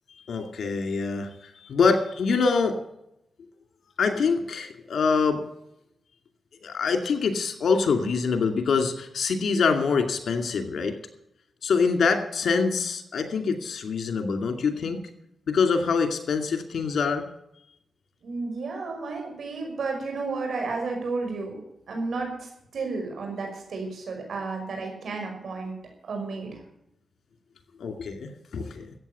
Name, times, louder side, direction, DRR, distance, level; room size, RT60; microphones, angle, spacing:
voice 1, 0.3-2.8 4.0-5.4 6.6-11.0 11.6-15.0 15.5-17.2 27.8-28.9, left 5 dB, 75° left, 6 dB, 2.4 m, -25 dB
voice 2, 18.2-25.7 26.1-26.6, right 3 dB, 75° right, 2 dB, 5.7 m, -32 dB
14.0 x 8.7 x 8.4 m, 0.80 s
cardioid pair, 65°, 0 cm